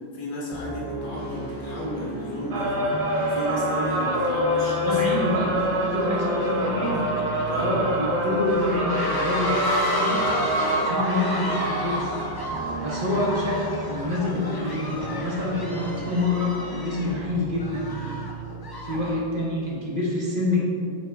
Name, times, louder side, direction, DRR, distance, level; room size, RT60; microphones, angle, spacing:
voice 1, 0.1-2.7 3.2-5.3 7.5-7.8 18.9-19.1, equal, 55° left, -6 dB, 1.4 m, -34 dB
sound 1, 0.5-19.7, right 1 dB, 25° right, 0.7 m, -35 dB
sound 2, 1.8-1.9 2.6-2.8 3.1-19.1, left 2 dB, 30° left, 0.4 m, -34 dB
sound 3, 2.5-16.0, equal, 90° right, 1.1 m, -27 dB
voice 2, 4.8-5.6 5.9-7.0 7.6-9.5 9.9-10.2 10.7-12.2 12.8-17.9 18.8-20.6, left 2 dB, 55° right, -3 dB, 1.4 m, -27 dB
8.4 x 3.6 x 3.5 m, 2.3 s
omnidirectional pair, 1.1 m